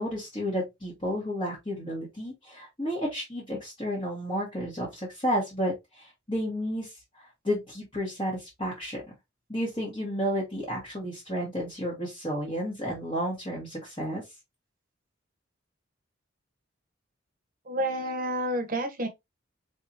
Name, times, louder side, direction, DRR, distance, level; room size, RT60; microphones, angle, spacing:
voice 1, 0.0-9.0 9.5-14.2, equal, 25° left, 1.7 m, -32 dB
voice 2, 17.7-19.1, right 1 dB, 45° right, 1.1 m, -29 dB
4.1 x 3.5 x 2.9 m
head